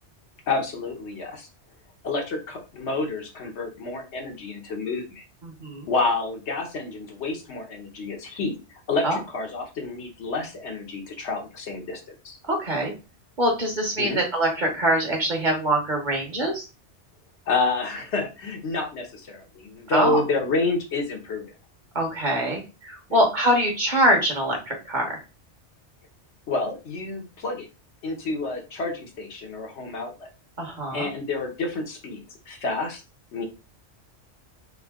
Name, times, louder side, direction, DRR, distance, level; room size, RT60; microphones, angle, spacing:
voice 1, 0.5-1.5 2.0-5.2 5.9-8.6 8.9-12.4 14.0-14.2 17.5-21.5 26.5-27.7 28.0-30.3 30.9-33.0 33.3-33.5, left 3 dB, 75° left, 2 dB, 1.2 m, -29 dB
voice 2, 5.4-5.9 9.0-9.2 12.5-12.9 13.4-16.7 19.9-20.2 21.9-25.2 30.6-31.1, right 1 dB, 45° right, 1 dB, 1.1 m, -24 dB
3.7 x 2.6 x 3.5 m, 0.30 s
omnidirectional pair, 1.2 m